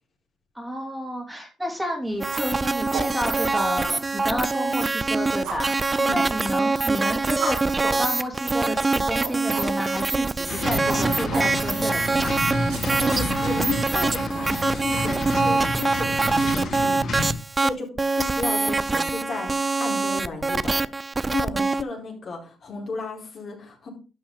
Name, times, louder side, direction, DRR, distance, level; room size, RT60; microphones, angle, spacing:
voice 1, 0.5-12.3, equal, 5° right, 2 dB, 2.8 m, -31 dB
sound 1, 2.0-14.3, right 3 dB, 80° right, 5.6 m, -39 dB
sound 2, 2.2-21.8, right 3 dB, 25° right, 0.5 m, -24 dB
sound 3, 10.5-17.3, left 2 dB, 65° left, 4.7 m, -30 dB
voice 2, 12.9-17.1 17.6-17.9 18.2-20.8 21.3-23.9, left 3 dB, 50° left, -1 dB, 4.2 m, -33 dB
12.0 x 6.0 x 3.7 m, 0.34 s
cardioid pair, 90°, 0 cm